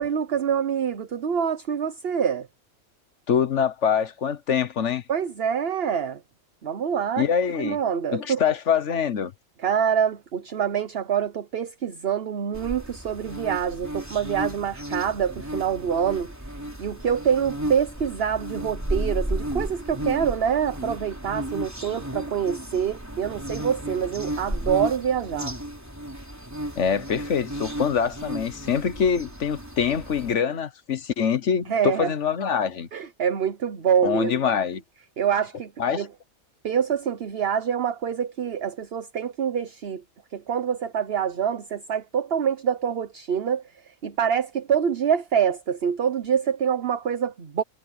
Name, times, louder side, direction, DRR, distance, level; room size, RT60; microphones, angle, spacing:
voice 1, 0.0-2.5 5.1-6.2 6.6-7.3 7.6-8.4 9.6-16.3 16.8-25.5 31.7-32.1 32.9-34.4 35.2-36.1 36.6-40.0 40.3-47.6, right 8 dB, 50° right, 1.1 m, -26 dB
voice 2, 3.3-5.0 7.2-7.8 8.1-9.3 26.8-32.9 34.0-34.8 35.8-36.1, left 7 dB, 60° left, 1.3 m, -24 dB
sound 1, 12.5-30.3, right 1 dB, 10° right, 3.7 m, -33 dB
omnidirectional pair, 1.5 m